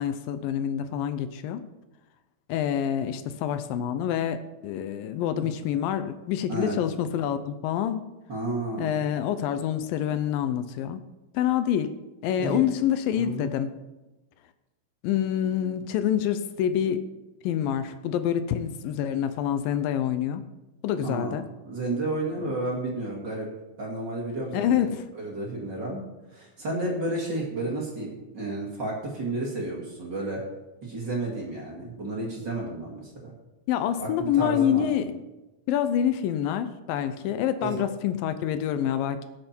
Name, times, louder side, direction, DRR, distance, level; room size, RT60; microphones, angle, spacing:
voice 1, 0.0-1.7 2.5-8.0 8.8-11.0 11.3-11.9 12.2-13.8 15.0-17.0 17.4-20.4 20.8-21.4 22.4-22.5 24.5-25.0 33.7-35.2 35.7-39.2, left 10 dB, 80° left, 11 dB, 2.4 m, -27 dB
voice 2, 8.3-9.0 12.4-12.6 13.1-13.5 21.0-21.4 21.6-23.5 23.8-24.9 25.1-26.0 26.3-30.4 30.8-33.3 34.0-34.9 37.6-37.7, right 2 dB, 35° right, -2 dB, 2.6 m, -31 dB
20.5 x 7.7 x 4.5 m, 1.0 s
omnidirectional pair, 4.1 m